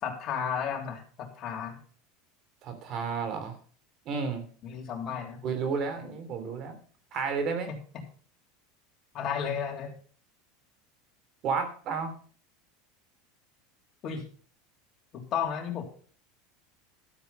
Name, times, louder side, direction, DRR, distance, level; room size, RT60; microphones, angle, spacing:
voice 1, 0.0-1.8 4.6-5.4 7.7-7.8 9.1-9.9 14.0-14.2 15.1-15.8, left 7 dB, 40° left, 2 dB, 3.4 m, -33 dB
voice 2, 2.6-3.6 4.0-4.4 5.4-6.7 7.1-7.7 11.4-12.1, right 5 dB, 45° right, 8 dB, 3.2 m, -31 dB
13.0 x 8.1 x 5.5 m, 0.43 s
supercardioid pair, 130°, 0 cm